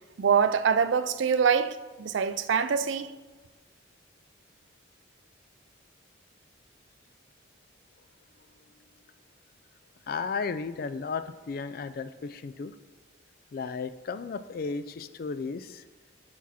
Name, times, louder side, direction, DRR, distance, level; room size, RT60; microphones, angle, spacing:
voice 1, 0.2-3.1, right 6 dB, 70° right, 0.4 m, -24 dB
voice 2, 10.1-12.7 13.5-15.8, left 5 dB, 50° left, 0.3 m, -34 dB
6.1 x 6.0 x 4.2 m
head